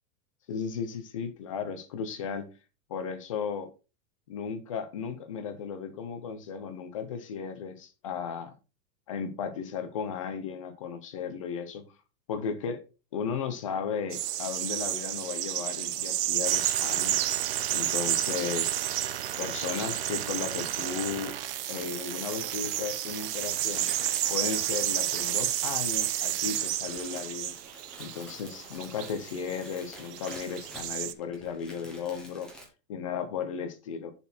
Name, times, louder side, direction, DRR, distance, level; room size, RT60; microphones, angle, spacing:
voice 1, 0.5-2.5 2.9-3.7 4.3-8.5 9.1-11.9 12.3-12.8 13.1-17.3 17.7-18.8 19.4-21.3 21.7-23.9 24.3-27.5 28.0-32.5 32.9-34.1, left 6 dB, 20° left, 0.5 m, -35 dB
sound 1, 14.1-31.1, right 13 dB, 65° right, 1.0 m, -31 dB
sound 2, 16.4-26.6, right 11 dB, 35° right, 0.7 m, -37 dB
sound 3, 20.0-32.7, equal, ahead, 0.9 m, -50 dB
10.5 x 4.2 x 4.3 m
supercardioid pair, 175°, 50 cm